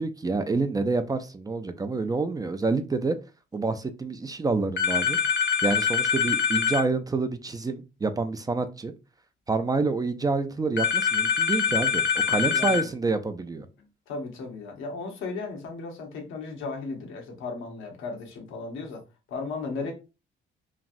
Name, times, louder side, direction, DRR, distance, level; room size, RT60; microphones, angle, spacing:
voice 1, 0.0-3.2 3.5-5.2 5.6-8.9 9.5-13.7, right 3 dB, 20° right, 0.3 m, -27 dB
sound 1, 4.8-6.8 10.8-12.8, left 7 dB, 65° left, 0.6 m, -24 dB
voice 2, 12.3-12.9 14.1-19.0 19.3-19.9, left 4 dB, 85° left, 0.9 m, -35 dB
3.0 x 2.6 x 2.5 m
cardioid pair, 90°, 20 cm